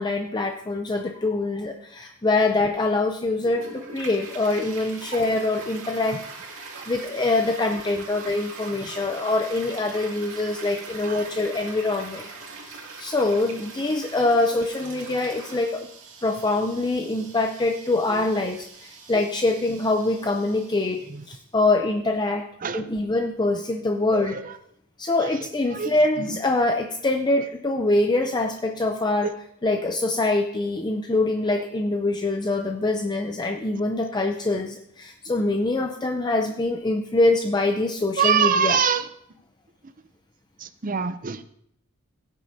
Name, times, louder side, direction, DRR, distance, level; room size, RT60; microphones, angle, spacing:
voice 1, 0.0-6.2 6.9-12.3 12.7-15.9 16.2-22.4 22.7-24.4 25.0-29.3 29.6-38.8, left 2 dB, 20° left, 4 dB, 0.5 m, -24 dB
Toilet flush, 3.4-21.3, right 4 dB, 60° right, 2.5 m, -42 dB
voice 2, 11.1-11.4 18.1-18.2 19.1-19.2 21.1-21.3 22.6-23.0 24.1-24.6 25.2-25.4 25.7-26.4 29.2-29.3 38.2-39.1 40.6-41.4, right 7 dB, 35° right, 12 dB, 0.6 m, -26 dB
16.5 x 9.2 x 2.7 m, 0.72 s
head